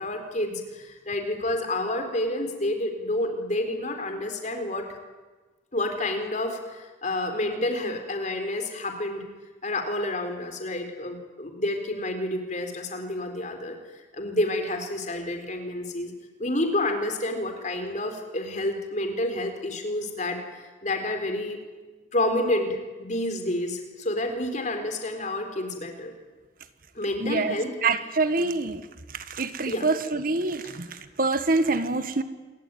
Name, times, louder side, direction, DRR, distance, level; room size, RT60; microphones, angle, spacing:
voice 1, 0.0-4.9 5.7-9.2 9.6-13.8 14.1-16.1 16.4-21.6 22.1-26.1 26.9-27.7 28.4-28.5 29.6-29.9, left 1 dB, 40° left, 5 dB, 4.2 m, -29 dB
voice 2, 27.2-28.8 29.1-32.2, right 3 dB, 50° right, 11 dB, 1.5 m, -26 dB
27.5 x 22.5 x 9.2 m, 1.3 s
head